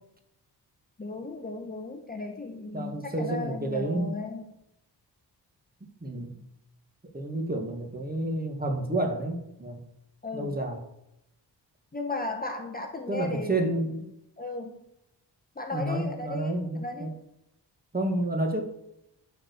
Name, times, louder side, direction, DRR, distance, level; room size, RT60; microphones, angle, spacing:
voice 1, 1.0-4.4 10.2-10.6 11.9-13.7 14.4-14.8 15.6-17.1, left 3 dB, 20° left, 3 dB, 1.1 m, -35 dB
voice 2, 2.7-4.1 6.0-6.4 7.1-9.8 10.3-10.8 13.1-14.1 15.7-17.1 17.9-18.6, right 1 dB, 20° right, 4 dB, 1.9 m, -30 dB
12.5 x 4.8 x 6.9 m, 0.83 s
wide cardioid pair, 115°, 42 cm